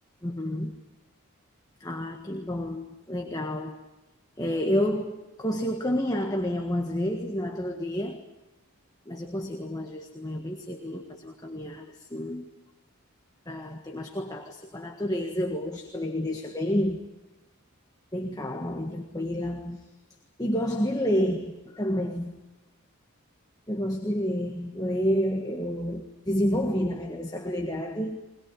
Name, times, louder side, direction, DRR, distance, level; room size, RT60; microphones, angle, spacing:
voice 1, 0.2-0.8 1.8-3.8 4.4-8.2 9.0-12.5 13.4-17.0 18.1-19.9 20.4-22.4 23.7-28.2, equal, 15° left, 2 dB, 1.6 m, -29 dB
22.0 x 20.5 x 9.8 m, 1.0 s
head